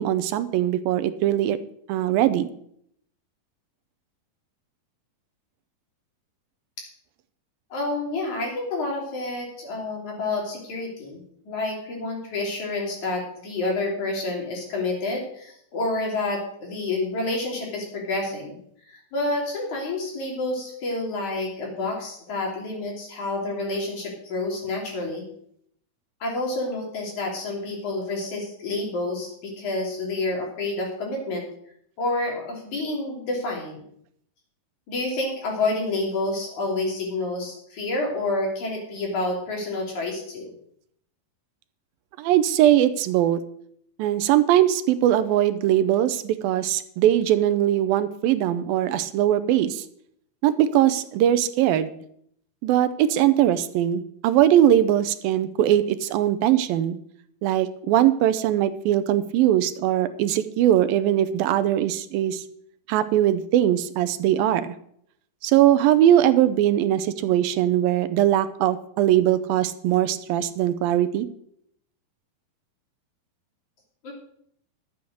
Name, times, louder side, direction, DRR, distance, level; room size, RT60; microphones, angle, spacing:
voice 1, 0.0-1.6 1.9-2.5 42.2-43.4 44.0-49.8 50.4-51.9 52.6-57.0 57.4-62.4 62.9-64.7 65.4-71.3, right 12 dB, 85° right, 12 dB, 2.5 m, -21 dB
voice 2, 7.7-18.6 18.9-25.2 26.2-31.4 32.0-33.8 34.9-40.5 74.0-74.1, left 2 dB, 55° left, -1 dB, 4.4 m, -29 dB
12.0 x 8.6 x 6.4 m, 0.68 s
omnidirectional pair, 4.2 m